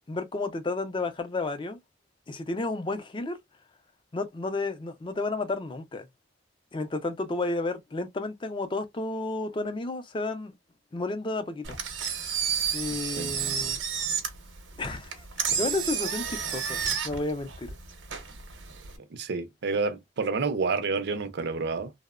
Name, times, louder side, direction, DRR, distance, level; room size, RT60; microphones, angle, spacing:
voice 1, 0.1-1.8 2.3-3.4 4.1-6.1 6.7-10.5 10.9-11.7 12.7-13.8 14.8-17.7, left 2 dB, 25° left, 0.4 m, -32 dB
Engine, 11.6-19.0, right 7 dB, 85° right, 0.8 m, -31 dB
voice 2, 13.0-13.4 19.1-21.9, right 4 dB, 60° right, 0.4 m, -29 dB
2.8 x 2.0 x 2.2 m
head